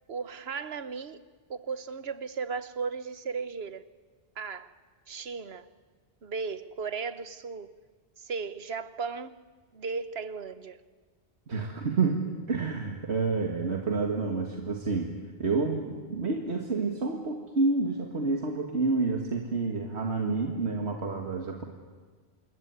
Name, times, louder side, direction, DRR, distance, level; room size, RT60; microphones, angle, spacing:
voice 1, 0.1-1.2 1.5-3.8 4.4-4.7 5.1-5.7 6.2-7.8 8.2-9.3 9.7-10.8, right 5 dB, 75° right, 1.3 m, -36 dB
voice 2, 11.5-15.1 15.4-21.7, right 3 dB, 90° right, 2.2 m, -29 dB
27.0 x 21.5 x 9.6 m
omnidirectional pair, 1.1 m